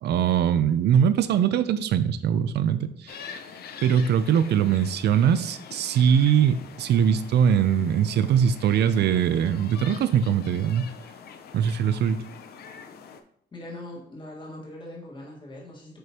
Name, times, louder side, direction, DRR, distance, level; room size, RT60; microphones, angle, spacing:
voice 1, 0.0-3.2 3.8-10.9 11.5-12.2, right 8 dB, 65° right, 13 dB, 0.5 m, -22 dB
sound 1, 3.1-13.2, left 6 dB, 60° left, 0.6 m, -44 dB
voice 2, 13.5-16.0, left 1 dB, 25° left, -2 dB, 1.7 m, -41 dB
7.9 x 5.0 x 2.9 m, 0.69 s
cardioid pair, 170°, 18 cm